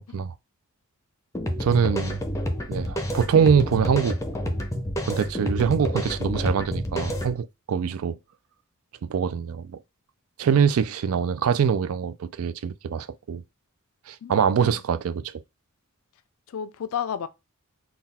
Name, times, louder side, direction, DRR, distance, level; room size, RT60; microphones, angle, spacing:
sound 1, 1.3-7.3, equal, 15° left, 0.5 m, -29 dB
voice 1, 1.6-2.2 2.7-4.2 5.0-8.2 9.1-9.8 10.4-13.4 14.1-15.2, right 7 dB, 75° right, 0.4 m, -23 dB
voice 2, 14.2-14.8 16.5-17.3, left 8 dB, 70° left, 0.4 m, -33 dB
3.9 x 2.3 x 4.1 m
head